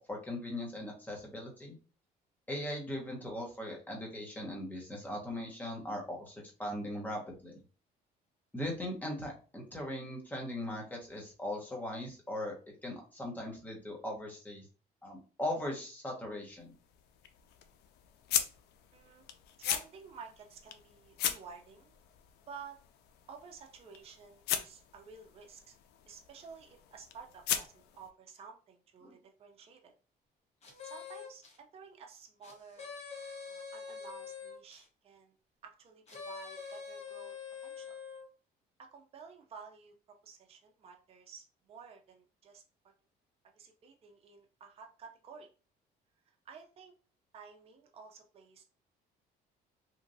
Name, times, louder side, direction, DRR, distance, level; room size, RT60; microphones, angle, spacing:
voice 1, 0.1-1.7 2.5-7.6 8.5-12.5 12.8-14.7 15.0-16.7 29.0-29.2, left 1 dB, 10° left, -1 dB, 1.0 m, -39 dB
sound 1, 16.5-28.1, left 10 dB, 80° left, 0.4 m, -40 dB
voice 2, 18.9-19.2 19.6-21.9 22.5-22.8 23.3-25.8 26.1-29.9 30.8-32.9 33.5-35.3 35.6-37.3 37.6-38.0 38.8-39.9 40.2-42.6 43.6-45.5 46.3-46.9 47.3-48.6, right 6 dB, 35° right, 3 dB, 0.5 m, -52 dB
sound 2, 30.6-31.6 32.4-34.8 36.1-38.3, left 6 dB, 40° left, 0.9 m, -45 dB
2.9 x 2.4 x 2.6 m, 0.36 s
cardioid pair, 110°, 17 cm